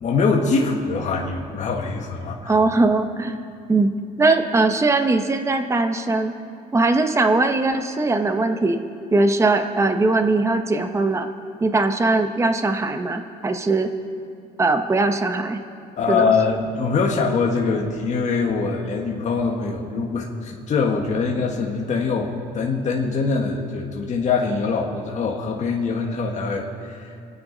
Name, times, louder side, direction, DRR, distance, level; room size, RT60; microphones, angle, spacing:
voice 1, 0.0-2.6 15.9-27.1, left 4 dB, 45° left, -1 dB, 1.6 m, -23 dB
voice 2, 2.5-3.4 3.7-3.9 4.2-6.3 6.7-8.8 9.1-11.3 11.6-13.9 14.6-15.6 16.1-16.3, right 3 dB, 15° right, 6 dB, 1.0 m, -20 dB
28.5 x 9.6 x 4.0 m, 2.6 s
cardioid pair, 110°, 17 cm